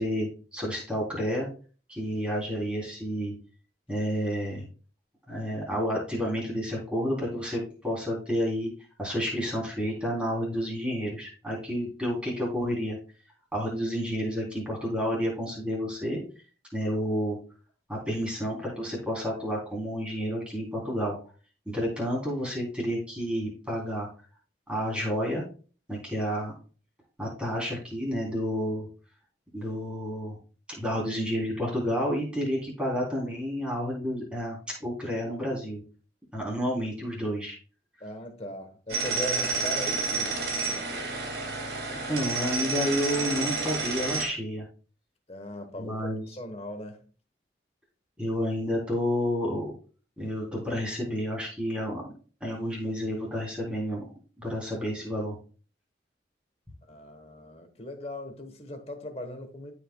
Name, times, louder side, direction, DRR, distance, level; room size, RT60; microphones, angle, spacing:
voice 1, 0.0-1.5 1.9-3.3 3.9-4.6 5.3-8.7 9.0-13.0 13.5-16.2 16.7-17.4 17.9-21.2 21.6-24.1 24.7-25.4 25.9-26.6 27.2-28.9 29.5-30.4 30.7-35.8 36.3-37.5 42.1-44.6 45.8-46.2 48.2-49.6 50.2-52.0 52.4-54.1 54.4-55.4, equal, 5° right, 3.4 m, -30 dB
voice 2, 38.0-41.1 45.3-47.0 56.8-59.7, equal, 35° left, 1.2 m, -39 dB
sound 1, 38.9-44.2, right 3 dB, 65° right, 2.4 m, -30 dB
14.5 x 5.0 x 2.3 m
head